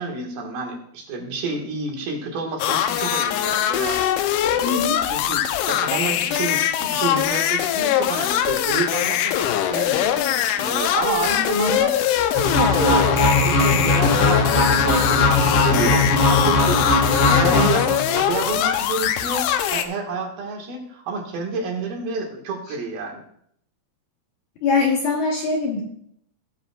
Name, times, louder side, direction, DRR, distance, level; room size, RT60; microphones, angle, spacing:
voice 1, 0.0-4.0 4.5-4.8 5.1-10.2 10.5-12.0 12.3-12.4 12.7-17.9 18.1-23.2, right 3 dB, 70° right, 1 dB, 3.3 m, -29 dB
sound 1, 2.6-19.8, left 11 dB, 85° left, 2.6 m, -22 dB
voice 2, 4.6-5.0 11.5-11.8 17.3-17.8 24.6-25.8, left 4 dB, 70° left, 0 dB, 2.0 m, -23 dB
sound 2, 12.3-18.3, left 2 dB, 50° left, 2.5 m, -19 dB
18.0 x 7.7 x 2.3 m, 0.68 s
omnidirectional pair, 4.6 m